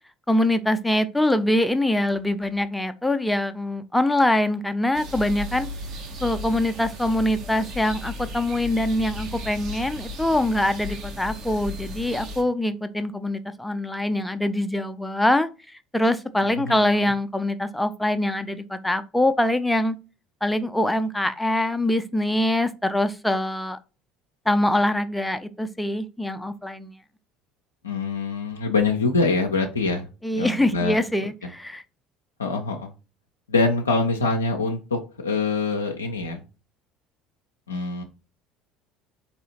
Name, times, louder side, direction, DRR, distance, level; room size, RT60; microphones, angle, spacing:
voice 1, 0.3-5.7 6.2-15.5 15.9-20.0 20.4-23.8 24.5-26.9 30.2-31.8, left 1 dB, 5° left, 0.5 m, -24 dB
sound 1, 4.9-12.4, left 1 dB, 55° right, 1.2 m, -36 dB
voice 2, 16.4-17.1 27.8-31.5 32.4-32.9 33.5-36.4 37.7-38.0, left 3 dB, 85° left, 0.4 m, -25 dB
4.0 x 2.7 x 2.9 m
figure-of-eight pair, 65°, 0 cm